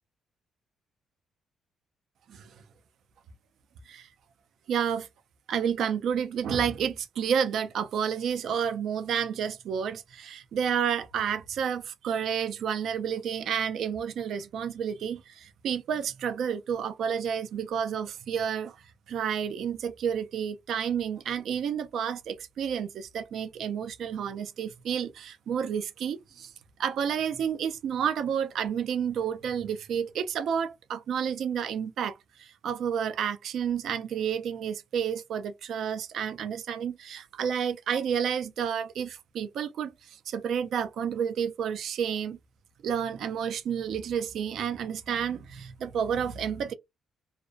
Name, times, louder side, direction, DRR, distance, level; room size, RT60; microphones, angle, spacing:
voice 1, 4.7-5.1 5.5-18.8 19.1-26.5 26.8-42.4 42.8-46.7, right 8 dB, 70° right, 0.4 m, -30 dB
2.5 x 2.1 x 2.4 m
cardioid pair, 90°, 0 cm